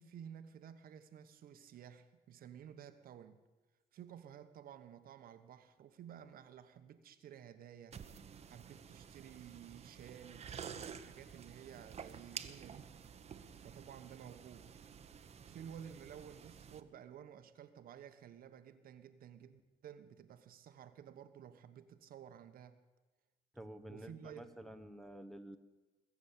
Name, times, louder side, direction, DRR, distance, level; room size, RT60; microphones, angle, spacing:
voice 1, 0.0-3.4 3.9-8.0 8.5-12.9 13.6-14.7 15.4-22.8 23.9-24.4, right 9 dB, 60° right, 9 dB, 1.1 m, -53 dB
sound 1, 7.9-16.8, right 7 dB, 40° right, 1.0 m, -51 dB
voice 2, 23.5-25.6, right 1 dB, ahead, 5 dB, 1.1 m, -50 dB
21.5 x 7.3 x 8.5 m, 1.2 s
cardioid pair, 110°, 17 cm